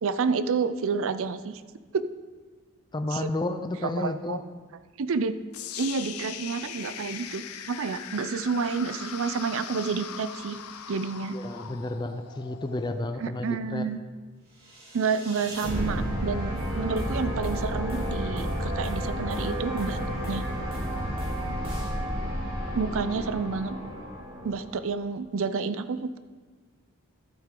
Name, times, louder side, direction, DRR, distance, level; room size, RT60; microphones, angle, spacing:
voice 1, 0.0-1.6 1.9-2.0 3.1-3.3 3.8-4.4 5.0-5.4 5.8-10.6 10.9-11.4 13.2-14.0 14.9-20.0 20.3-20.5 22.7-23.8 24.4-26.2, right 5 dB, 60° right, 12 dB, 0.4 m, -29 dB
voice 2, 2.9-4.4 11.3-13.9, left 2 dB, 20° left, 8 dB, 0.4 m, -31 dB
sound 1, 5.5-13.6, left 8 dB, 75° left, 0.6 m, -40 dB
sound 2, 14.7-24.9, equal, 45° right, 3.3 m, -32 dB
sound 3, 16.5-21.9, right 1 dB, 25° right, 2.2 m, -37 dB
12.0 x 8.1 x 3.8 m, 1.4 s
head